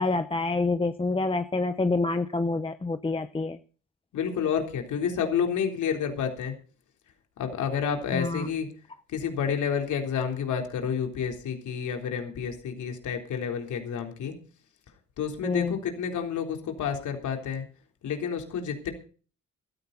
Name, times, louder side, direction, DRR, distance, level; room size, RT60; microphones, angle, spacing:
voice 1, 0.0-3.6 8.1-8.5 15.4-15.8, left 3 dB, 20° left, 9 dB, 0.9 m, -27 dB
voice 2, 4.1-6.5 7.4-8.7 9.1-14.3 15.2-17.6 18.0-18.9, left 7 dB, 75° left, 3 dB, 3.8 m, -29 dB
16.0 x 13.5 x 4.1 m, 0.40 s
cardioid pair, 90°, 30 cm